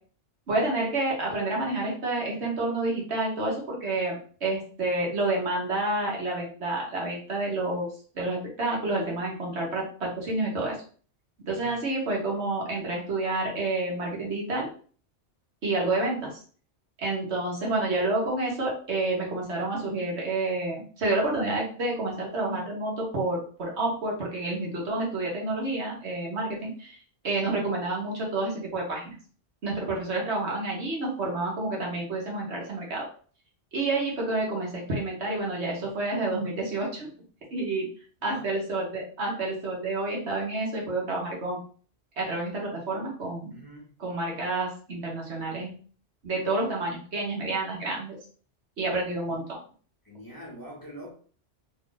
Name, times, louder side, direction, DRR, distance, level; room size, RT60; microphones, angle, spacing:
voice 1, 0.5-7.9 8.1-10.8 11.5-14.7 15.6-16.3 17.0-27.0 27.2-29.1 29.6-33.1 33.7-37.1 37.5-37.9 38.2-41.6 42.2-43.5 44.0-45.7 46.2-48.2 48.8-49.6, right 2 dB, 75° right, -2 dB, 1.4 m, -29 dB
voice 2, 11.5-11.8 38.2-38.4 43.5-43.9 49.2-49.4 50.0-51.1, right 1 dB, 20° left, -4 dB, 1.0 m, -44 dB
3.1 x 2.4 x 3.8 m, 0.43 s
omnidirectional pair, 1.1 m